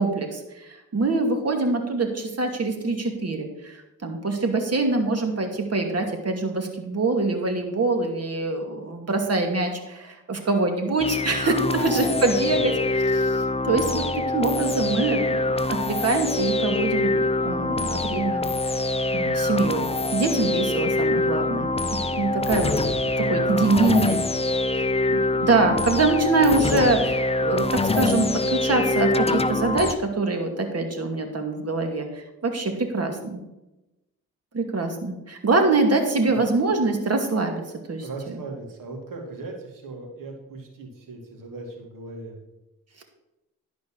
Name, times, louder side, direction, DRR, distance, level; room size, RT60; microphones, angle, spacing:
voice 1, 0.0-14.0 14.3-18.5 19.1-21.8 22.1-22.7 23.2-24.2 24.7-33.4 34.5-37.6 37.9-38.4 43.0-43.1, right 3 dB, 50° right, 4 dB, 2.5 m, -24 dB
sound 1, 11.0-29.9, left 2 dB, 20° left, 0.7 m, -24 dB
voice 2, 11.6-12.0 12.4-12.6 23.1-24.1 36.2-36.5 38.0-42.4, right 3 dB, 75° right, 1 dB, 2.7 m, -38 dB
11.5 x 5.2 x 6.3 m, 0.95 s
cardioid pair, 60°, 33 cm